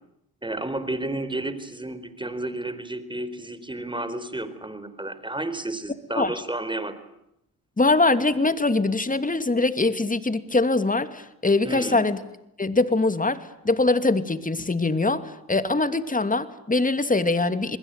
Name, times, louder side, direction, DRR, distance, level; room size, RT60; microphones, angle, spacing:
voice 1, 0.4-7.0 11.6-12.0, right 2 dB, 10° right, 13 dB, 4.5 m, -31 dB
voice 2, 7.8-12.2 12.6-13.4 13.6-17.8, left 3 dB, 20° left, 11 dB, 2.8 m, -22 dB
28.0 x 21.5 x 9.3 m, 0.80 s
supercardioid pair, 55°, 38 cm